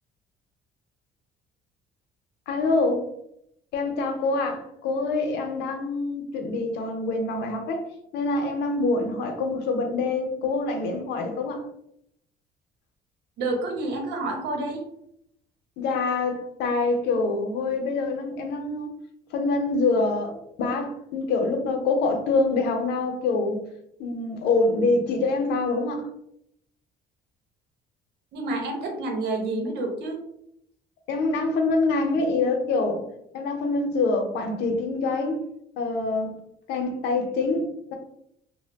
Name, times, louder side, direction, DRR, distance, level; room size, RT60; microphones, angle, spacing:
voice 1, 2.5-3.1 3.7-7.8 8.1-11.6 15.8-18.9 19.3-23.6 24.0-26.1 31.1-33.0 33.3-35.4 35.8-36.4 36.7-37.9, left 3 dB, 85° left, 5 dB, 0.7 m, -25 dB
voice 2, 13.4-14.8 28.3-30.2, right 2 dB, 80° right, 2 dB, 0.9 m, -29 dB
2.9 x 2.1 x 3.4 m, 0.74 s
cardioid pair, 110°, 17 cm